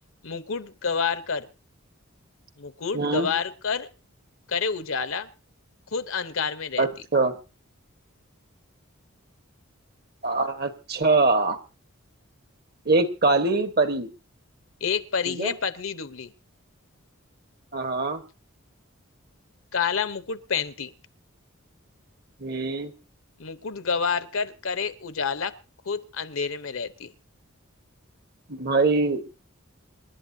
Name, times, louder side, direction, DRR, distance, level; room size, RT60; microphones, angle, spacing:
voice 1, 0.2-1.5 2.6-3.9 4.5-5.3 5.9-6.9 14.8-16.3 19.7-20.9 23.4-25.6 25.8-27.1, left 5 dB, 70° left, 0.9 m, -28 dB
voice 2, 2.9-3.3 6.8-7.3 10.2-11.6 12.8-14.1 15.3-15.5 17.7-18.2 22.4-22.9 28.5-29.3, right 3 dB, 50° right, 1.3 m, -23 dB
27.5 x 11.5 x 2.8 m
head